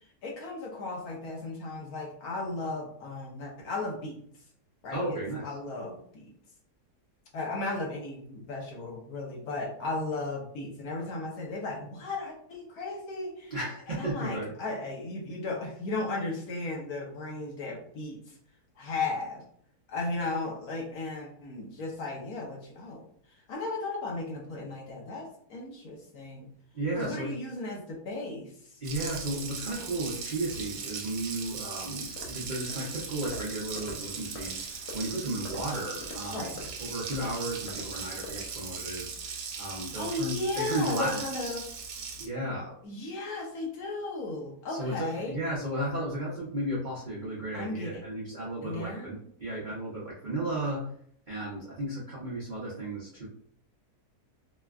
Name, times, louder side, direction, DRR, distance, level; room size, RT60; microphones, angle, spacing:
voice 1, 0.2-4.2 4.8-6.3 7.3-13.6 13.9-18.3 18.8-19.4 19.9-26.5 27.0-28.8 36.3-36.5 39.9-41.7 42.8-45.4 47.5-48.0 48.6-49.1, left 2 dB, 70° left, -1 dB, 1.2 m, -35 dB
voice 2, 4.9-5.5 13.5-14.5 26.7-27.3 28.8-36.5 36.8-39.2 39.6-41.6 42.2-42.7 44.7-50.8 51.3-53.3, right 1 dB, 45° right, -8 dB, 0.6 m, -34 dB
Water tap faucet, 28.8-42.3, right 5 dB, 85° right, 1.2 m, -39 dB
sound 1, 32.2-38.6, left 2 dB, 85° left, 1.4 m, -46 dB
4.3 x 2.2 x 2.3 m, 0.64 s
omnidirectional pair, 1.7 m